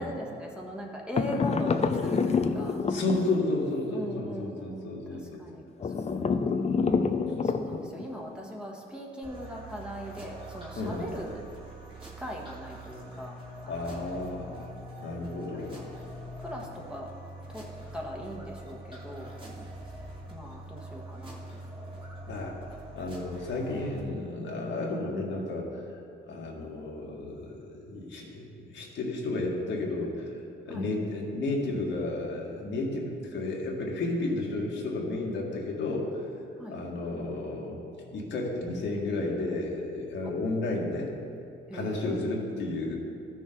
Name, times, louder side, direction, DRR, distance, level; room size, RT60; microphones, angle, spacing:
voice 1, 0.0-2.8 3.9-5.9 6.2-6.4 7.4-11.4 12.0-13.4 13.6-14.0 15.5-16.0 16.4-17.1 17.5-17.7 17.9-19.3 20.3-21.4 21.8-21.9 30.7-30.9 36.6-36.8 40.2-40.4 41.7-42.5, equal, 5° right, -2 dB, 1.4 m, -40 dB
sound 1, 1.2-3.7 5.8-8.1, left 5 dB, 35° left, 0.6 m, -27 dB
voice 2, 2.9-5.4 10.7-11.1 13.7-14.6 15.0-15.8 22.3-22.6 22.9-25.7 26.3-30.3 30.6-36.2 36.7-37.8 38.1-41.1 41.7-43.0, left 2 dB, 65° left, -2 dB, 1.8 m, -32 dB
sound 2, 9.2-24.0, right 1 dB, 25° right, 2.0 m, -44 dB
13.5 x 6.4 x 3.8 m, 2.5 s
cardioid pair, 90°, 20 cm